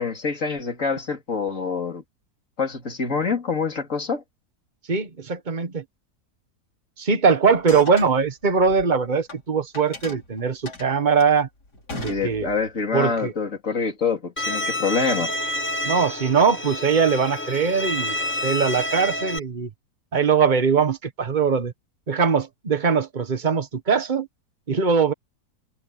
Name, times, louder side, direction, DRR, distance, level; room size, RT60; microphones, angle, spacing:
voice 1, 0.0-2.0 2.6-4.2 12.1-15.3, left 5 dB, 50° left, 3.5 m, -26 dB
voice 2, 4.9-5.8 7.0-11.5 11.9-12.5 12.9-13.3 15.8-18.2 18.4-19.7 20.1-21.7 22.1-24.3 24.7-25.1, right 5 dB, 30° right, 1.5 m, -21 dB
sound 1, 7.5-9.4 9.7-12.8, left 3 dB, 80° left, 4.9 m, -39 dB
Bowed string instrument, 14.4-19.4, left 1 dB, 10° left, 0.8 m, -28 dB
omnidirectional pair, 1.7 m